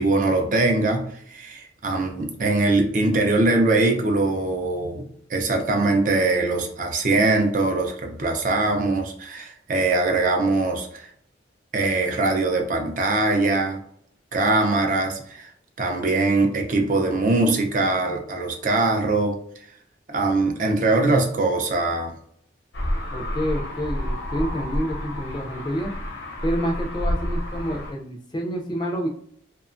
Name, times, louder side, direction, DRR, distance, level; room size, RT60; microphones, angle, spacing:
voice 1, 0.0-11.1 11.7-13.8 14.3-15.5 15.8-19.4 20.1-22.1, right 2 dB, 45° right, 3 dB, 0.4 m, -22 dB
sound 1, 22.7-27.9, equal, 75° left, 0.6 m, -29 dB
voice 2, 23.1-25.9 26.4-29.1, equal, 25° left, 2 dB, 0.3 m, -28 dB
2.8 x 2.2 x 2.5 m, 0.64 s
head